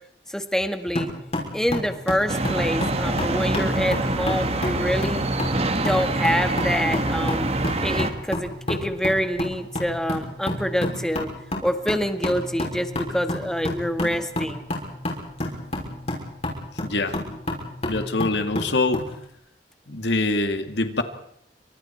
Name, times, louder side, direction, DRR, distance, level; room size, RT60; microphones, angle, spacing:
voice 1, 0.3-1.1 1.5-5.3 5.8-11.3 11.6-14.6, equal, 5° left, 8 dB, 1.7 m, -26 dB
sound 1, 1.0-19.1, left 1 dB, 40° left, 6.1 m, -31 dB
sound 2, 2.3-8.1, right 2 dB, 35° right, 1.7 m, -25 dB
voice 2, 16.8-17.2 17.8-19.0 19.9-21.0, left 2 dB, 80° left, 7 dB, 2.2 m, -24 dB
29.5 x 25.5 x 4.5 m, 0.70 s
head